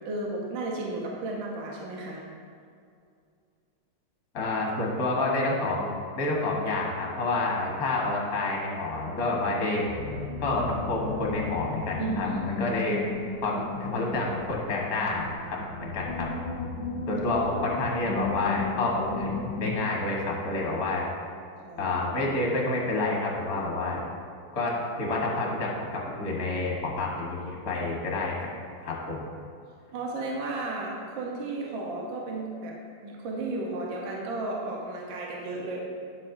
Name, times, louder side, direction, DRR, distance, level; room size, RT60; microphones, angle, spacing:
voice 1, 0.0-2.2 12.0-12.6 16.7-17.3 21.6-21.9 29.9-32.8 33.0-35.8, right 2 dB, 65° right, -2 dB, 1.6 m, -34 dB
voice 2, 4.3-9.8 10.4-13.0 13.4-16.3 17.1-21.1 21.8-24.1 24.5-28.4 28.8-29.3, left 2 dB, 45° left, -2 dB, 1.6 m, -29 dB
sound 1, 9.9-19.8, left 3 dB, 65° left, 0.7 m, -35 dB
10.0 x 7.3 x 2.6 m, 2.3 s
omnidirectional pair, 2.4 m